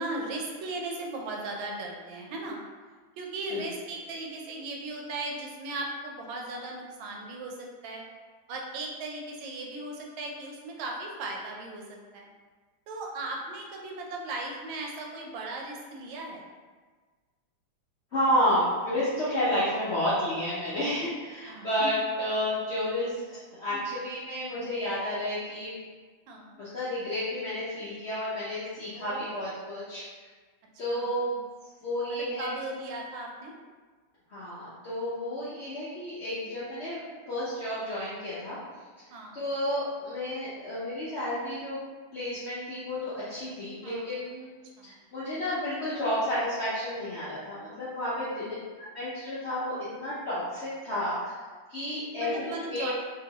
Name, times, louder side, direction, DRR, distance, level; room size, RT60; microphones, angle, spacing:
voice 1, 0.0-2.6 3.2-8.0 8.5-11.8 12.1-12.3 12.9-16.4 21.5-21.7 23.7-23.9 26.3-26.6 28.9-29.4 30.9-31.1 32.1-33.5 39.1-39.4 43.8-44.1 44.8-44.9 48.2-48.6 52.2-52.9, right 2 dB, 80° right, 0 dB, 1.3 m, -37 dB
voice 2, 18.1-23.2 23.6-25.8 26.6-30.0 30.8-31.4 31.8-32.5 34.3-37.0 37.3-38.6 39.3-41.8 42.1-44.5 44.8-48.4 48.8-51.4 51.7-52.9, left 1 dB, 80° left, -11 dB, 0.6 m, -31 dB
2.9 x 2.8 x 2.8 m, 1.4 s
omnidirectional pair, 2.1 m